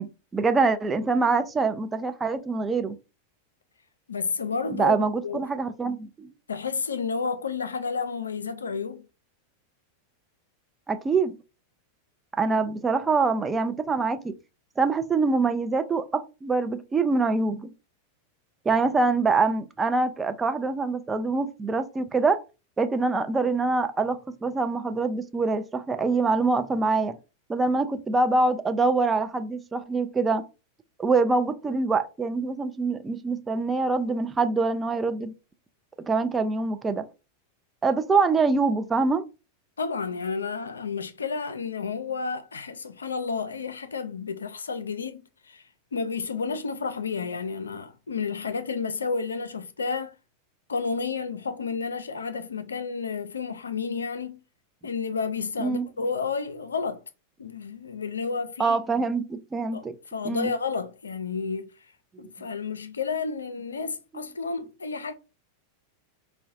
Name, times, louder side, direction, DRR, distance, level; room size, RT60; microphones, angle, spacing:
voice 1, 0.0-3.0 4.7-6.3 10.9-11.3 12.4-14.3 14.8-17.7 18.7-22.4 22.8-27.2 27.5-30.4 31.0-35.3 36.1-37.0 37.8-39.2 55.6-55.9 58.6-59.9 60.2-60.5, right 4 dB, 15° right, 0.4 m, -25 dB
voice 2, 4.1-5.4 6.5-9.1 39.8-45.6 45.9-50.2 50.7-54.4 54.8-57.0 57.4-58.8 59.7-61.7 62.2-65.1, left 5 dB, 70° left, 0.4 m, -31 dB
4.6 x 2.1 x 2.6 m
figure-of-eight pair, 90°, 0 cm